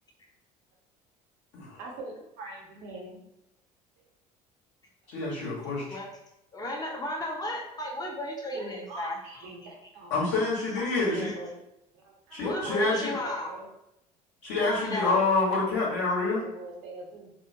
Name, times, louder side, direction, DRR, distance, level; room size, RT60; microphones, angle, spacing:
voice 1, 1.8-3.2 8.5-10.4 10.8-11.5 11.9-12.7 13.1-13.2 13.5-13.7 15.6-17.3, right 2 dB, 65° right, -1 dB, 0.8 m, -43 dB
voice 2, 5.1-6.0 10.1-11.3 12.3-13.2 14.4-16.4, left 3 dB, 65° left, -6 dB, 1.3 m, -27 dB
voice 3, 6.5-9.2 10.6-10.8 11.2-11.4 12.4-13.5 14.6-15.2 16.1-16.3, left 1 dB, 20° left, 0 dB, 0.7 m, -34 dB
2.6 x 2.1 x 2.7 m, 0.84 s
hypercardioid pair, 60°, 20 cm